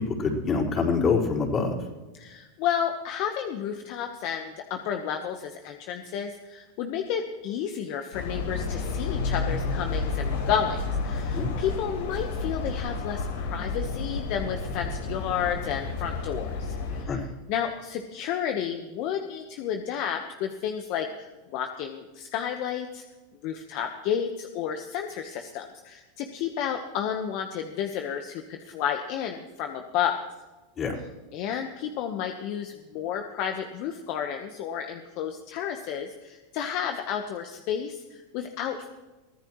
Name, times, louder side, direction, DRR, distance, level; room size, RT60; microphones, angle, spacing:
voice 1, 0.0-1.8 11.3-11.5 17.1-17.2 30.8-31.0, left 4 dB, 30° left, -2 dB, 4.7 m, -25 dB
voice 2, 2.1-17.2 17.5-23.0 23.4-30.2 31.3-38.9, left 8 dB, 55° left, 5 dB, 1.2 m, -31 dB
sound 1, 8.1-17.0, left 4 dB, 80° left, 4.4 m, -31 dB
23.5 x 15.5 x 3.2 m, 1.2 s
hypercardioid pair, 115°, 0 cm